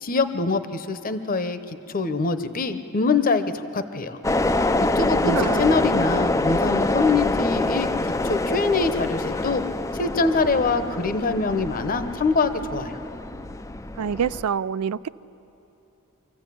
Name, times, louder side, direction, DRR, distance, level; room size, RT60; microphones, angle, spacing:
voice 1, 0.0-1.6 1.9-4.2 4.8-9.6 9.9-13.0, left 4 dB, 40° left, 10 dB, 0.8 m, -24 dB
sound 1, 4.2-14.4, left 2 dB, 15° left, 0.4 m, -25 dB
voice 2, 5.3-5.7 14.0-15.1, right 7 dB, 85° right, 17 dB, 0.4 m, -26 dB
25.5 x 15.0 x 8.5 m, 3.0 s
head